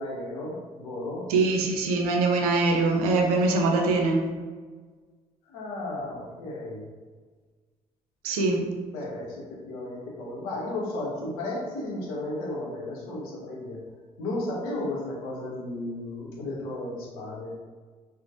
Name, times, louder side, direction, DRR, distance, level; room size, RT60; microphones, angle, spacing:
voice 1, 0.0-1.2 5.5-6.8 8.9-13.8 14.2-17.5, left 2 dB, 70° left, -4 dB, 0.7 m, -34 dB
voice 2, 1.3-4.2 8.2-8.7, right 3 dB, 70° right, 1 dB, 0.4 m, -23 dB
3.0 x 2.0 x 2.5 m, 1.5 s
figure-of-eight pair, 45°, 20 cm